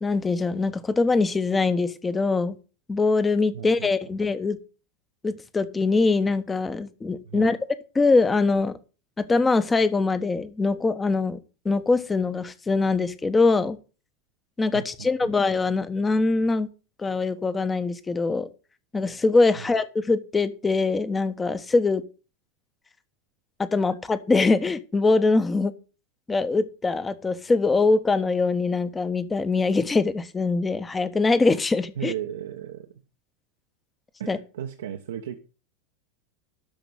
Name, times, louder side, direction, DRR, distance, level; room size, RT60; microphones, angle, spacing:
voice 1, 0.0-2.6 2.9-4.6 5.2-7.6 7.9-8.7 9.2-11.4 11.6-13.8 14.6-16.7 17.0-18.5 18.9-22.0 23.6-25.7 26.3-32.1 34.3-34.4, left 3 dB, 15° left, 13 dB, 1.2 m, -23 dB
voice 2, 3.5-3.9 7.2-7.5 14.7-14.8 15.2-15.3 19.6-19.7 32.0-32.9 34.2-35.4, right 10 dB, 70° right, 5 dB, 1.1 m, -35 dB
12.5 x 5.2 x 7.5 m, 0.34 s
figure-of-eight pair, 85°, 0 cm